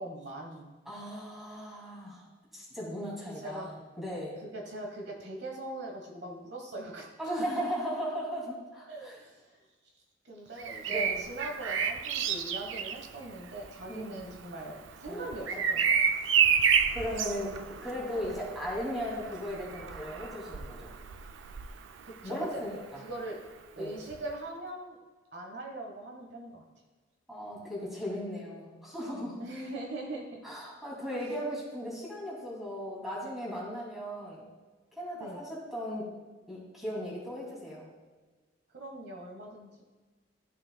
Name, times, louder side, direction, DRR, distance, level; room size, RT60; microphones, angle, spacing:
voice 1, 0.0-0.7 3.4-3.7 4.4-7.1 8.9-9.6 10.2-16.1 22.0-22.6 23.0-23.4 23.8-25.0 25.3-26.6 29.4-30.4 31.2-31.3 35.2-35.4 38.7-39.8, right 2 dB, 60° right, 0 dB, 1.2 m, -41 dB
voice 2, 0.9-2.2 2.5-4.3 7.2-9.2 10.9-11.2 13.9-14.3 15.1-15.3 16.9-20.9 22.2-22.8 23.8-23.9 27.3-29.4 30.4-34.5 34.9-36.1 36.5-37.9, equal, ahead, -6 dB, 2.5 m, -37 dB
Bird vocalization bird call bird song, 10.6-22.4 24.1-24.3, right 7 dB, 80° right, 0.4 m, -31 dB
13.5 x 6.3 x 2.2 m, 1.3 s
head